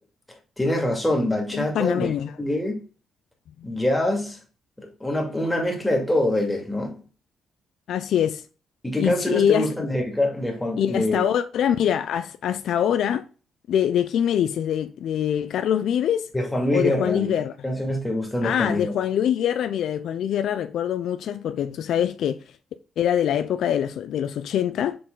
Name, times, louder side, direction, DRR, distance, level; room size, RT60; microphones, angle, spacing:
voice 1, 0.6-2.1 2.4-2.8 3.6-4.4 4.8-7.0 8.8-11.3 16.3-17.3 17.6-18.9, left 1 dB, 10° left, 2.2 m, -25 dB
voice 2, 1.5-2.4 7.9-8.4 9.0-9.7 10.8-13.2 13.7-16.3 16.7-17.5 18.4-22.4 23.0-25.0, left 9 dB, 70° left, 0.5 m, -24 dB
6.6 x 4.1 x 3.8 m
cardioid pair, 90°, 0 cm